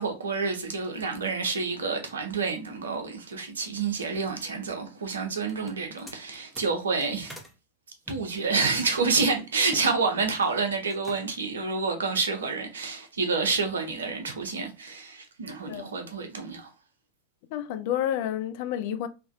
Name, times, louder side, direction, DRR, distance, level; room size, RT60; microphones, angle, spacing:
voice 1, 0.0-7.3 8.1-16.7, right 4 dB, 70° right, 0.6 m, -28 dB
sound 1, 5.5-7.5 8.0-9.9 10.2-10.6 10.9-11.5, right 1 dB, ahead, 0.7 m, -46 dB
voice 2, 17.5-19.1, left 10 dB, 50° left, 0.3 m, -30 dB
3.4 x 2.1 x 2.4 m
figure-of-eight pair, 90°, 0 cm